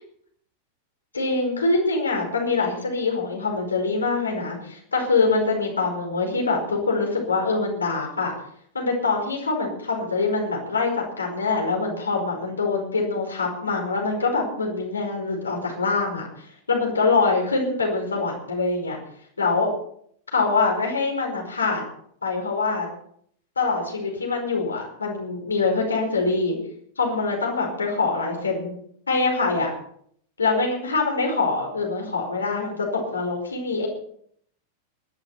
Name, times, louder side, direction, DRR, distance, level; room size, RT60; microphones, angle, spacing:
voice 1, 1.1-8.3 8.7-16.3 16.7-19.0 19.4-19.7 20.3-21.8 22.2-22.9 23.5-26.6 27.0-28.7 29.1-29.7 30.4-33.9, left 3 dB, 75° left, 1 dB, 5.1 m, -24 dB
20.5 x 11.5 x 4.4 m, 0.65 s
figure-of-eight pair, 90°, 0 cm